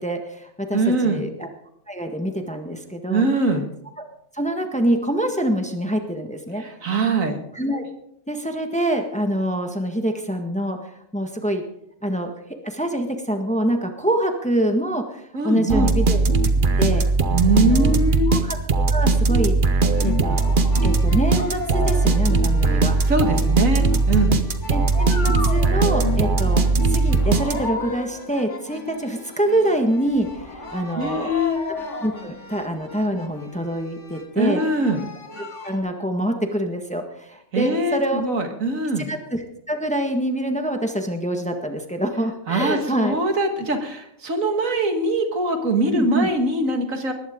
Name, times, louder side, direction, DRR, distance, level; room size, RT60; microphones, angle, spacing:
voice 1, 0.0-1.5 1.9-3.2 4.3-6.6 7.5-7.8 8.3-11.6 12.0-12.3 12.6-16.2 16.8-17.0 17.5-18.0 18.3-18.6 18.9-19.5 20.0-20.4 20.8-22.9 24.7-31.3 32.0-34.6 35.6-38.2 39.0-39.4 39.7-43.2 45.9-46.3, right 1 dB, 5° left, 4 dB, 1.6 m, -25 dB
voice 2, 0.7-1.2 3.1-3.6 6.6-7.4 15.3-15.9 17.3-18.3 23.1-24.3 31.0-31.6 34.4-35.0 37.5-39.1 42.5-47.1, right 2 dB, 75° right, 5 dB, 2.3 m, -22 dB
sound 1, 15.7-27.9, right 3 dB, 40° right, 1.1 m, -19 dB
sound 2, 19.9-35.8, left 3 dB, 60° left, 2.2 m, -36 dB
20.0 x 15.0 x 3.8 m, 0.77 s
omnidirectional pair, 1.4 m